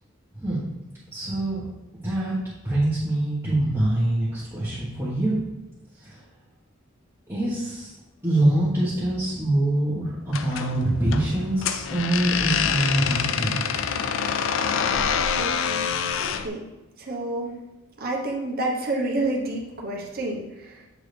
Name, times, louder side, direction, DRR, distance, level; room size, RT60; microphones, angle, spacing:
voice 1, 1.1-1.7 2.0-2.3 2.6-5.4 5.9-6.2 7.3-7.9 8.2-13.8, right 1 dB, 15° right, -11 dB, 1.4 m, -24 dB
sound 1, 10.3-16.5, left 7 dB, 65° left, 0.4 m, -26 dB
voice 2, 15.3-15.8 16.2-16.7 17.0-17.6 18.0-20.9, right 2 dB, 45° right, 0 dB, 1.1 m, -29 dB
7.7 x 3.7 x 3.4 m, 1.0 s
head